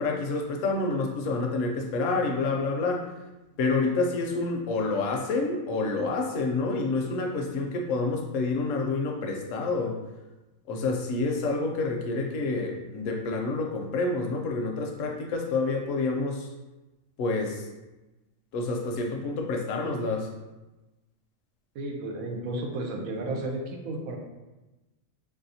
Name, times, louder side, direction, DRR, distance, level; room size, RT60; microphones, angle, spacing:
voice 1, 0.0-3.1 3.6-10.0 10.7-16.5 17.2-17.7 18.5-20.3, left 3 dB, 75° left, 2 dB, 0.9 m, -28 dB
voice 2, 21.7-24.2, right 2 dB, 85° right, 2 dB, 1.0 m, -33 dB
3.5 x 2.7 x 2.6 m, 1.1 s
omnidirectional pair, 1.4 m